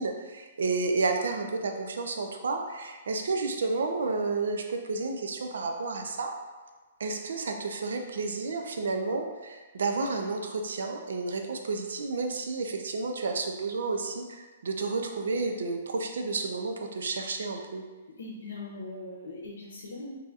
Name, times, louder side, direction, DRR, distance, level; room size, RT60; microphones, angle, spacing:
voice 1, 0.0-6.3 7.0-17.8, right 3 dB, 80° right, 4 dB, 0.4 m, -31 dB
voice 2, 18.2-20.1, left 2 dB, 85° left, -4 dB, 0.7 m, -40 dB
3.9 x 2.7 x 2.4 m, 1.3 s
hypercardioid pair, 160°, 0 cm